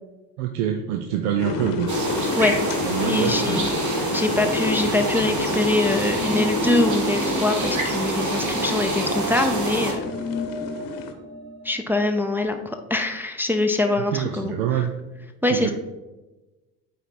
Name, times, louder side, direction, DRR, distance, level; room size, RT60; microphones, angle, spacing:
voice 1, 0.4-1.9 2.8-3.7 14.1-14.9 15.5-15.7, right 9 dB, 70° right, 4 dB, 0.7 m, -25 dB
sound 1, 1.4-11.1, left 4 dB, 45° left, 1.0 m, -30 dB
sound 2, 1.9-9.9, right 2 dB, 40° right, 1.8 m, -27 dB
voice 2, 3.0-3.7 4.1-10.1 11.6-14.9 15.4-15.7, left 2 dB, 5° right, 3 dB, 0.6 m, -24 dB
sound 3, 6.1-12.2, equal, 10° left, 1.9 m, -32 dB
8.9 x 3.7 x 4.5 m, 1.1 s
figure-of-eight pair, 50°, 45 cm